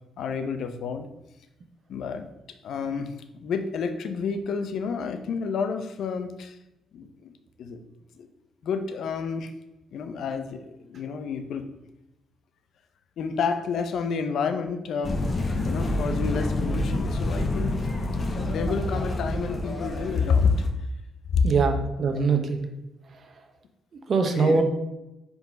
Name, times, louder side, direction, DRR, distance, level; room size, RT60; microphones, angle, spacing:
voice 1, 0.2-1.1 1.9-2.3 2.6-3.1 3.4-6.6 6.9-7.3 7.6-7.8 8.2-8.3 8.6-9.5 9.9-10.6 10.9-11.7 13.2-17.7 18.4-20.7 21.3-21.4 22.2-22.3 24.3-24.6, left 5 dB, 70° left, 8 dB, 0.6 m, -29 dB
sound 1, 15.0-20.7, left 1 dB, 35° left, 1.0 m, -28 dB
voice 2, 21.4-22.7 24.1-24.6, right 4 dB, 50° right, 5 dB, 0.9 m, -22 dB
4.9 x 4.0 x 5.2 m, 0.94 s
cardioid pair, 90°, 0 cm